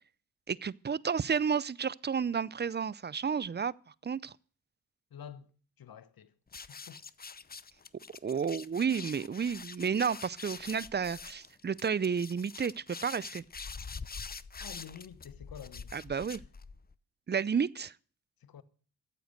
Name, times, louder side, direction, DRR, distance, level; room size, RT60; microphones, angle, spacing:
voice 1, 0.5-3.7 4.0-4.3 8.2-13.4 15.9-16.4 17.3-17.9, right 6 dB, 25° right, 0.5 m, -31 dB
voice 2, 5.1-5.5 5.8-6.3 6.6-7.0 14.6-16.0 16.3-16.5 18.4-18.6, left 9 dB, 65° left, 1.2 m, -49 dB
sound 1, 6.5-16.9, left 5 dB, 25° left, 0.7 m, -45 dB
13.5 x 7.9 x 6.6 m
supercardioid pair, 45°, 39 cm